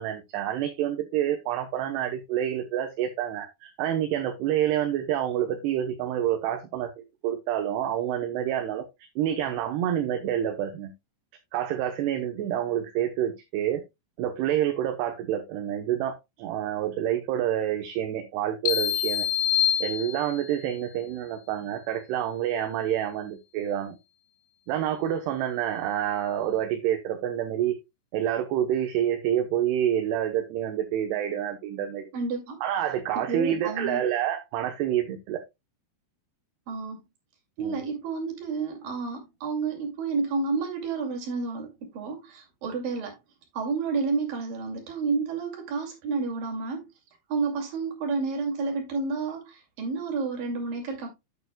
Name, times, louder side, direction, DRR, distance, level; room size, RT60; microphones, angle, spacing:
voice 1, 0.0-8.9 9.2-10.9 11.5-13.8 14.2-19.3 19.8-24.0 24.7-27.8 28.1-32.1 32.6-35.4 37.6-37.8, right 11 dB, 75° right, 2.8 m, -28 dB
sound 1, 18.7-20.6, left 10 dB, 80° left, 2.9 m, -26 dB
voice 2, 32.1-32.6 33.2-34.0 36.7-37.0 37.6-43.2 43.5-46.8 47.3-51.1, right 4 dB, 55° right, 3.8 m, -30 dB
9.6 x 8.6 x 2.2 m
omnidirectional pair, 5.3 m